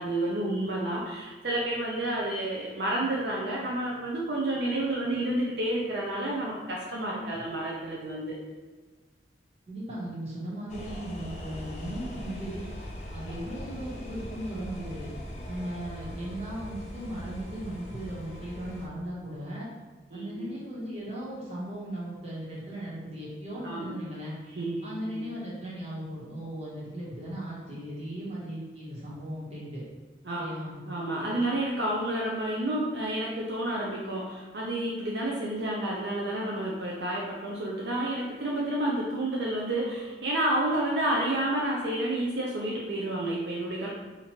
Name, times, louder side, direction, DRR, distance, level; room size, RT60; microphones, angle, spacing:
voice 1, 0.0-8.3 20.1-20.5 23.6-24.0 24.5-25.3 30.2-30.4 30.9-43.9, right 1 dB, 75° right, -3 dB, 0.5 m, -30 dB
voice 2, 7.0-7.4 9.7-12.6 13.1-15.1 15.4-19.7 20.1-24.4 24.8-29.8 30.3-30.8, right 1 dB, 35° right, -7 dB, 1.2 m, -37 dB
sound 1, 10.7-18.9, equal, 40° left, 0.6 m, -40 dB
2.9 x 2.5 x 4.3 m, 1.3 s
head